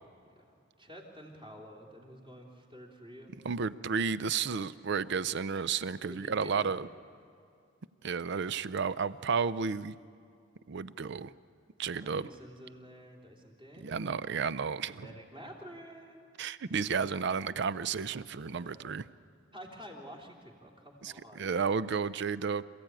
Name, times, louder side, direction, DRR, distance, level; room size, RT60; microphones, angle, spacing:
voice 1, 0.5-3.3 6.1-6.7 11.9-14.2 15.0-16.3 18.5-19.0 19.5-21.7, equal, 25° right, -1 dB, 3.1 m, -50 dB
voice 2, 3.4-6.9 8.0-9.9 10.7-11.3 11.8-12.3 13.8-15.1 16.4-19.1 21.0-22.6, right 5 dB, 60° right, 16 dB, 0.5 m, -32 dB
27.0 x 15.5 x 8.9 m, 2.4 s
head